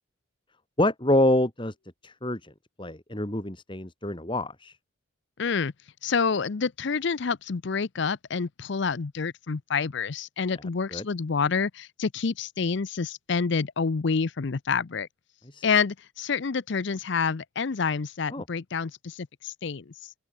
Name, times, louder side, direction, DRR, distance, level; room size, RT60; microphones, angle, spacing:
voice 1, 0.8-1.7 2.0-2.5 2.8-4.8 10.9-11.0 15.5-15.6 18.3-18.4, left 1 dB, 25° left, 2.4 m, -26 dB
voice 2, 5.4-5.7 6.0-15.1 15.6-20.1, left 5 dB, 60° left, 0.6 m, -28 dB
open air
head